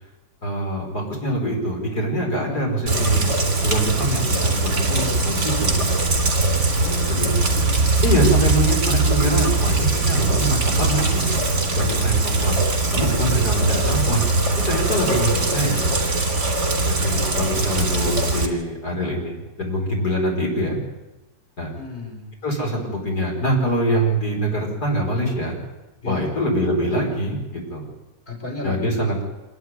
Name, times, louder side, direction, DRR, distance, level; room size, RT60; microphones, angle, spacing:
voice 1, 0.4-3.3 3.6-5.7 7.1-7.5 8.0-11.4 11.7-12.6 12.9-14.2 14.6-15.8 16.9-20.8 21.6-21.7 22.4-25.6 26.1-27.9 28.6-29.2, right 1 dB, 60° left, 0 dB, 5.9 m, -24 dB
Rain, 2.9-18.5, right 3 dB, 50° right, 3.6 m, -21 dB
voice 2, 6.8-8.0 8.4-8.5 17.1-18.0 21.7-22.4 26.0-26.2 28.3-29.0, left 3 dB, 30° left, 0 dB, 5.2 m, -35 dB
27.0 x 13.5 x 9.7 m, 1.1 s
omnidirectional pair, 1.9 m